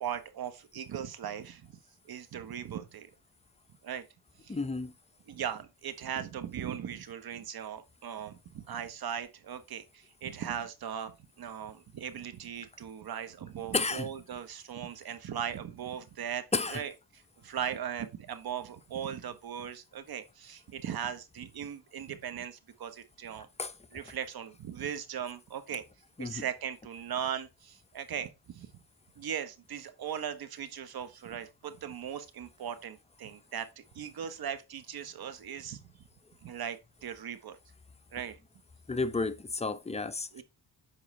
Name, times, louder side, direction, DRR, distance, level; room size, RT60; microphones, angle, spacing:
voice 1, 0.0-1.8 2.1-3.1 3.8-4.0 4.4-4.5 5.3-11.1 11.4-16.9 17.4-23.5 23.9-25.8 26.2-28.7 29.2-35.8 36.4-37.6 38.1-38.4 40.3-40.4, right 9 dB, 60° right, 1.1 m, -38 dB
voice 2, 4.5-4.9 13.7-14.1 16.5-16.8 23.6-23.7 26.2-26.4 38.9-40.4, left 3 dB, 15° left, 0.6 m, -32 dB
7.5 x 4.8 x 3.2 m
cardioid pair, 90°, 42 cm